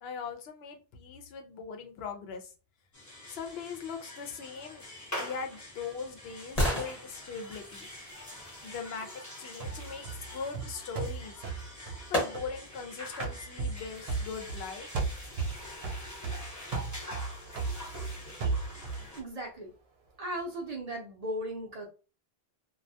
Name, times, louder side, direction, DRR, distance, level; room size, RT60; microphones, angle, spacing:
voice 1, 0.0-2.5 3.3-4.8 5.2-7.9 8.6-11.3 12.1-14.9, left 5 dB, 80° left, 4 dB, 0.8 m, -40 dB
sound 1, 2.9-19.2, left 1 dB, 20° left, 0.7 m, -45 dB
sound 2, 5.1-9.1 11.2-11.3 12.1-12.8 13.3-13.4, left 1 dB, 40° left, 1.1 m, -35 dB
sound 3, 9.6-12.8 13.2-14.7 14.9-19.1, right 4 dB, 80° right, 0.8 m, -35 dB
voice 2, 19.2-19.7 20.2-21.9, right 1 dB, 45° right, 1 dB, 0.6 m, -36 dB
2.3 x 2.1 x 2.6 m, 0.33 s
omnidirectional pair, 1.0 m